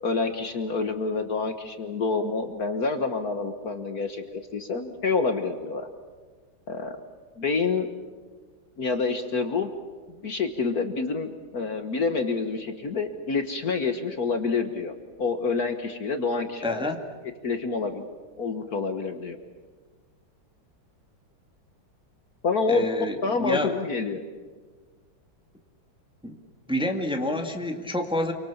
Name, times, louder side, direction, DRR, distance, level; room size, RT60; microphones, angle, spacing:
voice 1, 0.0-5.9 6.7-7.0 7.4-7.9 8.8-9.7 10.2-14.9 15.2-16.9 17.4-18.0 18.4-19.4 22.4-22.9 23.2-24.2, left 4 dB, 50° left, 7 dB, 1.8 m, -27 dB
voice 2, 16.6-17.0 22.7-23.8 26.2-26.4 26.7-28.3, left 1 dB, 5° right, 3 dB, 1.9 m, -28 dB
28.0 x 24.5 x 7.3 m, 1.4 s
omnidirectional pair, 2.2 m